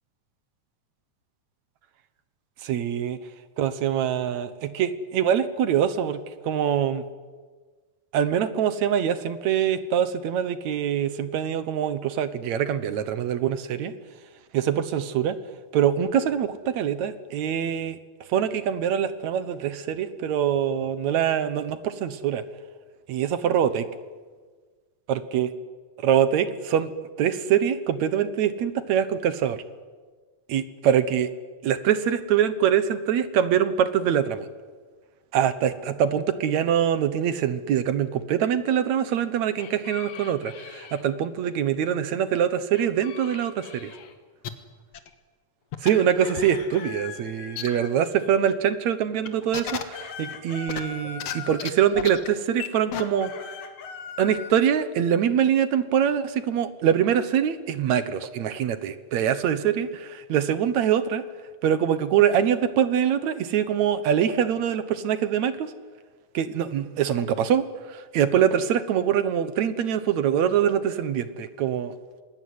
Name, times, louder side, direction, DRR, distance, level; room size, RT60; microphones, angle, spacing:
voice 1, 2.6-3.2 3.6-7.0 8.1-13.9 14.5-15.4 15.7-18.0 18.3-22.4 23.1-23.9 25.1-25.5 26.0-26.9 27.2-29.6 30.5-31.3 31.6-34.5 35.3-43.9 45.8-53.6 54.2-61.2 61.6-65.7 66.3-71.9, right 9 dB, 65° right, 13 dB, 2.2 m, -24 dB
sound 1, 39.6-41.0 42.7-44.1 45.8-48.5 49.4-51.8 52.9-54.5, left 7 dB, 85° left, 3.4 m, -41 dB
sound 2, 44.4-44.5 44.9-45.1 45.7-45.9 46.4-46.5 47.6-47.7 48.0-48.1 49.3-49.8 50.7-51.3 51.6-51.7 52.0-52.3 52.6-52.7 52.9-53.0, left 9 dB, 55° left, 2.2 m, -31 dB
26.5 x 20.5 x 9.6 m, 1.4 s
omnidirectional pair, 3.8 m